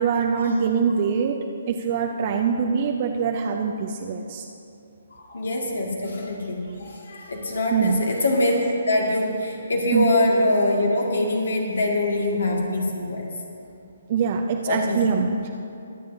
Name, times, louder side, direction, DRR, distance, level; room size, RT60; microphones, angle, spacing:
voice 1, 0.0-1.4 1.7-4.4 7.7-8.0 9.9-10.0 14.1-15.5, right 6 dB, 40° right, 3 dB, 0.6 m, -23 dB
voice 2, 5.1-13.3 14.7-15.0, left 1 dB, 70° left, -1 dB, 2.0 m, -24 dB
23.0 x 7.7 x 2.7 m, 2.6 s
figure-of-eight pair, 135°, 0 cm